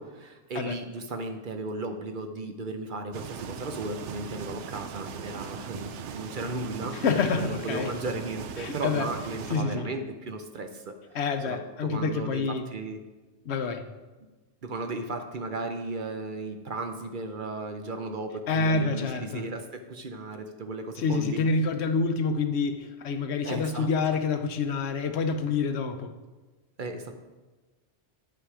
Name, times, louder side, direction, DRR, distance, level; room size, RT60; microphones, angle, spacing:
voice 1, 0.0-7.0 7.4-10.8 11.4-12.4 12.7-13.0 14.6-21.4 23.4-23.9 26.8-27.1, right 2 dB, 50° right, 6 dB, 0.8 m, -35 dB
sound 1, 3.1-9.6, right 7 dB, 85° right, 0.9 m, -39 dB
voice 2, 6.9-7.9 8.6-9.1 9.5-9.9 11.1-12.7 13.5-13.8 18.5-19.4 21.0-26.1, left 4 dB, 75° left, 8 dB, 1.0 m, -27 dB
9.6 x 5.9 x 4.9 m, 1.2 s
omnidirectional pair, 1.2 m